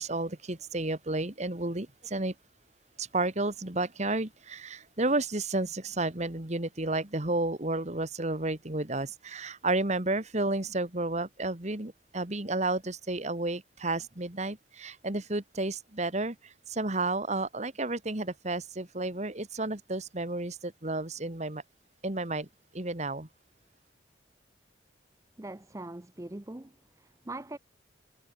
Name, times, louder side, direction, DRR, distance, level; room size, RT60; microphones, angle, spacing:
voice 1, 0.0-2.3 3.0-21.6 22.0-22.5 22.7-23.3, right 2 dB, 40° right, 2.0 m, -32 dB
voice 2, 25.4-27.6, right 2 dB, 15° right, 0.6 m, -42 dB
head